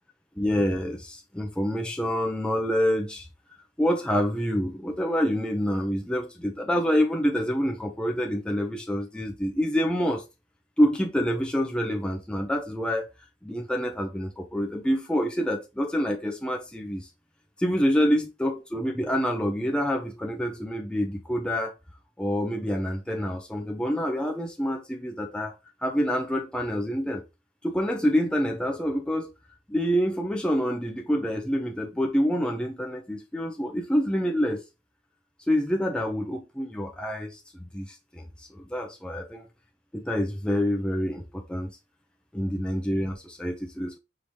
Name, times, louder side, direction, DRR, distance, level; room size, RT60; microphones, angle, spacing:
voice 1, 0.4-3.3 3.8-10.2 10.8-13.1 13.4-17.1 17.6-21.7 22.2-25.5 25.8-27.2 27.6-29.3 29.7-34.6 35.5-37.4 37.7-39.5 39.9-41.7 42.3-44.0, equal, 5° left, 0.5 m, -27 dB
4.9 x 2.8 x 3.1 m
head